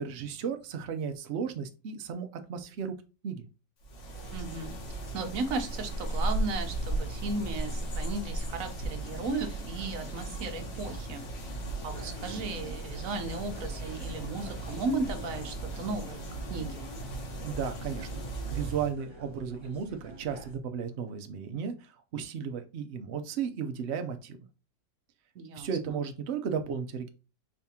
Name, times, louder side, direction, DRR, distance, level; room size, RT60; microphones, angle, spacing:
voice 1, 0.0-2.9 3.2-3.4 17.4-18.2 18.5-24.4 25.6-27.1, right 7 dB, 90° right, 6 dB, 0.5 m, -34 dB
sound 1, 3.8-18.9, right 1 dB, 75° left, 1.9 m, -36 dB
voice 2, 4.3-4.7 5.1-11.2 11.8-16.2 16.5-16.8 25.3-26.0, right 3 dB, 55° right, 6 dB, 1.1 m, -35 dB
sound 2, 11.8-20.6, right 2 dB, 25° right, 0.7 m, -49 dB
5.1 x 3.6 x 2.8 m, 0.31 s
omnidirectional pair, 2.0 m